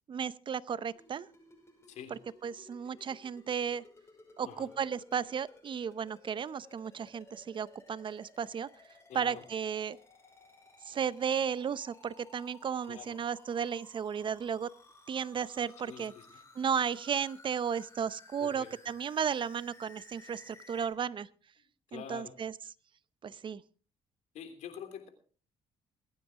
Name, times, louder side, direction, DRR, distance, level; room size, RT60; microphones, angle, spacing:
voice 1, 0.1-1.3 2.4-3.8 4.4-8.7 9.1-10.0 10.8-14.7 15.1-16.1 16.5-21.3 21.9-22.5 23.2-23.6, right 7 dB, 45° right, 18 dB, 0.7 m, -34 dB
sound 1, 0.9-20.9, left 2 dB, 20° left, 5.6 m, -58 dB
voice 2, 9.1-9.4 12.9-13.1 15.8-16.3 18.4-18.7 21.9-22.3 24.3-25.1, left 8 dB, 75° left, 6 dB, 3.2 m, -45 dB
23.0 x 9.6 x 3.7 m, 0.40 s
supercardioid pair, 80°, 12 cm